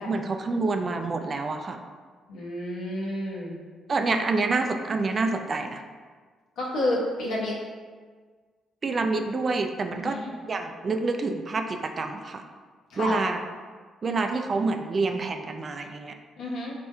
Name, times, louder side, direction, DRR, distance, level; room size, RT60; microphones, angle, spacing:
voice 1, 0.0-1.8 3.9-5.8 8.8-12.4 13.0-13.4 14.0-16.1, right 3 dB, 40° right, 6 dB, 0.3 m, -27 dB
voice 2, 2.3-3.6 6.6-7.5 9.9-10.3 12.9-13.2 16.4-16.7, left 1 dB, 85° left, -5 dB, 1.0 m, -30 dB
4.3 x 3.3 x 2.3 m, 1.5 s
cardioid pair, 90°, 0 cm